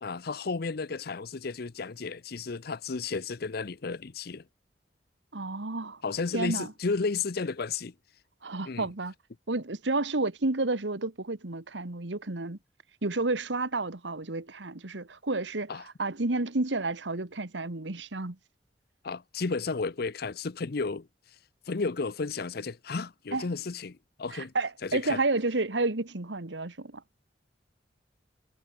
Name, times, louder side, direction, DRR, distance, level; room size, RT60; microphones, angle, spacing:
voice 1, 0.0-4.4 6.0-7.9 8.7-8.9 15.7-15.8 19.0-21.1 21.7-24.5 24.8-25.2, left 4 dB, 60° left, 0.7 m, -33 dB
voice 2, 5.3-6.0 6.3-6.7 8.4-9.1 9.5-12.6 13.0-18.4 23.3-23.5 24.3-27.0, right 2 dB, 85° right, 1.6 m, -31 dB
head